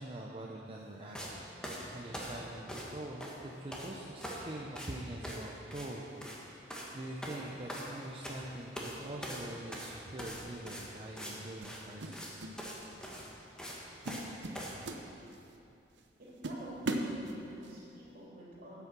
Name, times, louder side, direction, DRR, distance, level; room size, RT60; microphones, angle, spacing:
voice 1, 0.0-1.4 1.9-12.4, right 1 dB, 30° right, -2 dB, 0.7 m, -44 dB
sound 1, 1.1-1.3 1.6-2.9 3.2-3.9 4.2-4.5 4.7-4.9 5.2-5.4 5.7-5.9 6.1-6.4 6.7-6.9 7.2-8.4 8.7-8.9 9.2-11.3 11.6-11.8 12.1-12.3 12.6-12.8 13.0-14.3 14.5-14.7, equal, 5° left, 1.3 m, -42 dB
sound 2, 10.3-10.5 11.6-12.6 12.8-13.1 13.6-13.8 14.0-15.6 16.0-16.1 16.4-17.8, right 2 dB, 75° right, 0.8 m, -38 dB
voice 2, 16.2-18.8, equal, 55° right, -6 dB, 2.9 m, -50 dB
9.2 x 8.3 x 6.1 m, 2.7 s
head